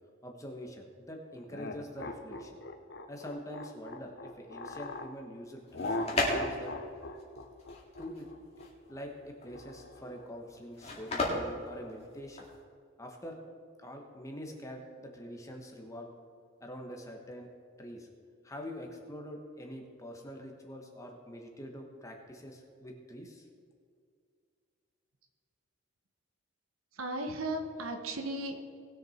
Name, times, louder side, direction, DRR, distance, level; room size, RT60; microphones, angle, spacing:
voice 1, 0.2-2.6 3.1-6.8 8.0-8.3 8.9-12.5 13.0-13.4 13.8-16.1 16.6-17.5 17.8-18.1 18.4-23.5, equal, 15° left, 2 dB, 1.3 m, -45 dB
sound 1, 1.5-5.1 5.7-10.2, left 2 dB, 55° left, 0.9 m, -40 dB
sound 2, 5.5-12.6, left 2 dB, 30° left, 2.2 m, -35 dB
voice 2, 26.9-28.6, right 1 dB, 80° right, 5 dB, 1.3 m, -35 dB
19.5 x 6.8 x 4.4 m, 2.3 s
head